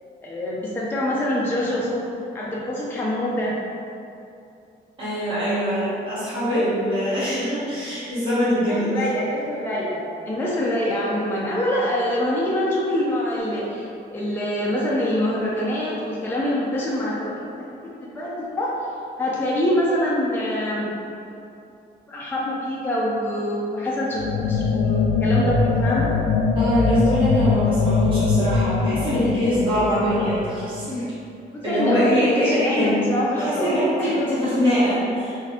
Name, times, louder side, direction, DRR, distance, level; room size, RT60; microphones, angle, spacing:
voice 1, 0.2-2.1 2.3-3.5 6.5-6.6 8.3-8.4 8.7-17.4 18.0-18.7 19.2-20.9 22.1-26.1 31.7-33.7 34.0-34.5, left 1 dB, 10° left, -6 dB, 0.4 m, -25 dB
voice 2, 5.0-9.0 26.6-31.0 31.6-33.0 33.4-35.4, equal, 25° right, -13 dB, 1.0 m, -23 dB
sound 1, 24.2-30.9, left 4 dB, 80° left, 0.4 m, -22 dB
3.9 x 2.6 x 2.8 m, 2.6 s
cardioid pair, 145°, 19 cm